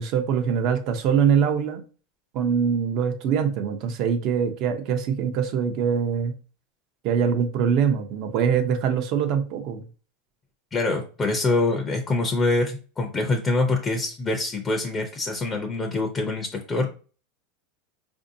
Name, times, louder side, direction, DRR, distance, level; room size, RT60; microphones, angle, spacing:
voice 1, 0.0-1.8 2.3-6.3 7.0-9.8, right 7 dB, 50° right, 0.7 m, -23 dB
voice 2, 10.7-16.9, left 2 dB, 20° left, 0.6 m, -25 dB
4.4 x 2.7 x 2.6 m
supercardioid pair, 130°, 0 cm